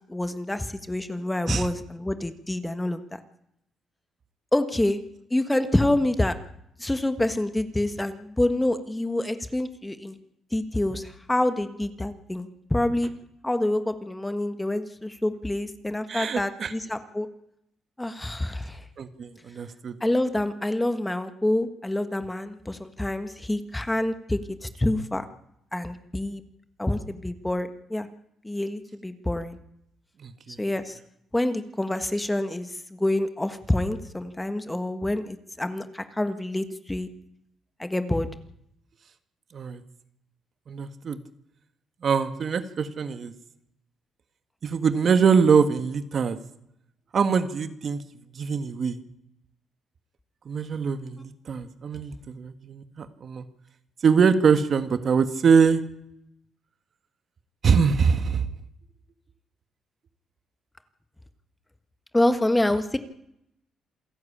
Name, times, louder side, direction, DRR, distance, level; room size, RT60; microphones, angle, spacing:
voice 1, 0.1-3.2 4.5-5.0 5.3-6.3 6.8-10.2 10.5-13.1 13.4-17.3 18.0-18.8 20.0-25.2 25.7-26.4 26.8-28.1 28.4-29.6 30.6-31.0 31.3-37.1 37.8-38.3 62.1-63.0, left 1 dB, 10° left, 10 dB, 1.5 m, -27 dB
voice 2, 16.1-16.7 19.0-20.0 30.2-30.6 39.5-39.8 40.7-41.2 42.0-43.3 44.6-46.4 47.1-48.0 48.3-49.0 50.4-53.4 54.0-55.8 57.6-58.5, right 6 dB, 50° right, 10 dB, 1.5 m, -23 dB
27.0 x 11.0 x 8.7 m, 0.80 s
cardioid pair, 90°, 0 cm